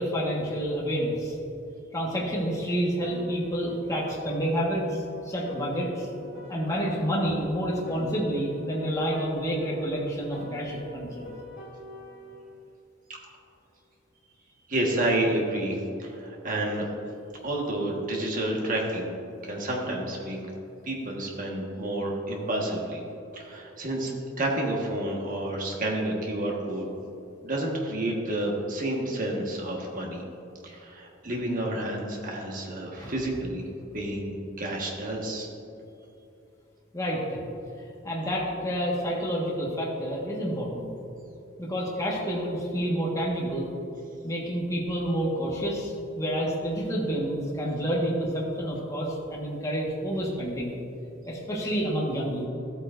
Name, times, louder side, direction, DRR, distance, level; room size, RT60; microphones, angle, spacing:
voice 1, 0.0-1.3 1.9-6.1 6.5-11.3 33.0-33.2 36.9-37.4 38.0-40.9 41.6-43.7 44.2-50.7 51.3-52.5, equal, 15° left, -4 dB, 1.5 m, -29 dB
Piano, 3.0-7.5 7.9-12.5, left 1 dB, 50° left, 1.8 m, -44 dB
voice 2, 14.7-16.9 17.4-19.1 19.4-20.4 20.8-23.0 23.3-24.1 24.4-26.9 27.4-30.2 30.6-33.7 33.9-35.5, right 1 dB, 40° right, -1 dB, 1.5 m, -30 dB
13.5 x 8.6 x 2.6 m, 2.8 s
head